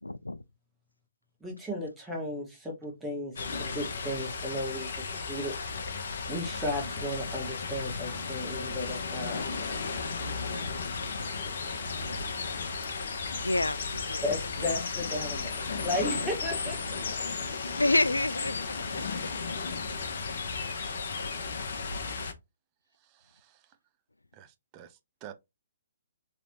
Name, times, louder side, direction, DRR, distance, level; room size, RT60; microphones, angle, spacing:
voice 1, 0.0-0.4 13.4-14.2 14.6-14.8 17.7-19.0, left 2 dB, 80° left, 0.3 m, -29 dB
voice 2, 1.4-5.9 6.3-10.0 14.2-17.0, left 1 dB, 5° right, 1.5 m, -35 dB
sound 1, 3.4-22.3, left 4 dB, 50° left, 0.8 m, -34 dB
voice 3, 22.9-23.8 24.3-25.3, right 10 dB, 25° right, 0.6 m, -50 dB
4.0 x 3.2 x 2.9 m
figure-of-eight pair, 130°, 0 cm